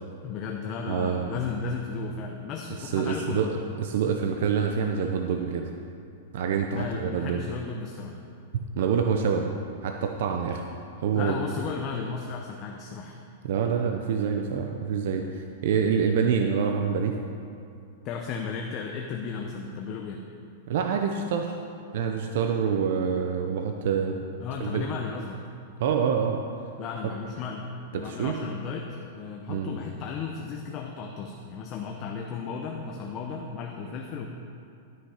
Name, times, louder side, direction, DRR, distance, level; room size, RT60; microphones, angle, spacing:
voice 1, 0.2-3.5 6.7-8.2 11.1-13.2 18.0-20.2 24.4-25.4 26.8-34.3, left 5 dB, 30° left, 2 dB, 0.6 m, -35 dB
voice 2, 0.9-1.3 2.8-5.6 6.3-7.4 8.8-9.5 9.8-10.6 11.0-11.4 13.4-17.1 20.7-21.6 21.9-24.2 24.6-24.8 25.8-26.4 27.9-28.4 29.5-29.8, right 6 dB, 60° right, 3 dB, 0.6 m, -26 dB
12.5 x 6.4 x 4.9 m, 2.5 s
supercardioid pair, 160°, 0 cm